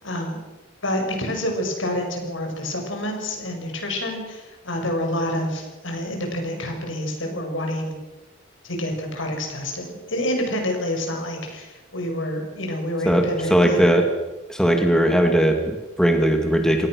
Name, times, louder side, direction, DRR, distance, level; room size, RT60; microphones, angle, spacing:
voice 1, 0.0-0.4 0.8-7.9 8.6-13.8, left 1 dB, 80° left, 3 dB, 6.4 m, -28 dB
voice 2, 13.1-14.1 14.5-16.9, equal, 5° left, 3 dB, 2.3 m, -19 dB
27.0 x 18.0 x 6.4 m, 1.1 s
head